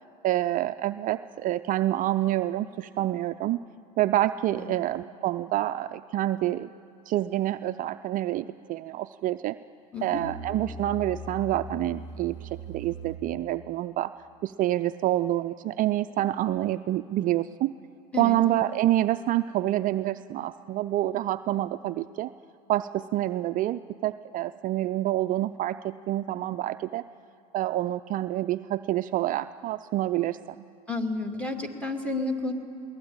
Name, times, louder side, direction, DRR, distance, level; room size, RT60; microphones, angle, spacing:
voice 1, 0.2-3.6 4.0-6.7 7.1-9.6 10.0-14.1 14.4-17.7 18.2-22.3 22.7-27.0 27.5-30.6, right 14 dB, 45° right, 11 dB, 0.4 m, -27 dB
Musical instrument, 9.9-13.5, equal, 65° left, 2.1 m, -40 dB
voice 2, 9.9-10.3 18.1-18.4 30.9-32.5, left 3 dB, 5° left, 3 dB, 2.6 m, -31 dB
22.0 x 18.0 x 8.8 m, 2.7 s
hypercardioid pair, 90°, 20 cm